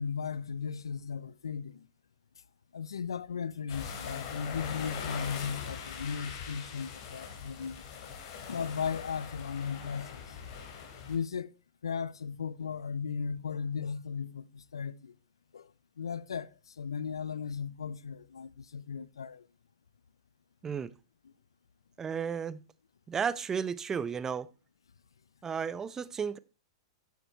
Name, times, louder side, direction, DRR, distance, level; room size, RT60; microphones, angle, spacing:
voice 1, 0.0-1.9 2.7-7.8 8.5-10.4 11.1-11.5 11.8-15.1 15.5-15.7 16.0-19.5, left 6 dB, 90° left, 0.4 m, -36 dB
sound 1, 3.7-11.2, left 7 dB, 55° left, 2.8 m, -42 dB
voice 2, 22.0-22.6 23.1-24.5 25.4-26.4, right 6 dB, 20° right, 0.6 m, -33 dB
9.3 x 7.0 x 4.4 m
hypercardioid pair, 115°, 2 cm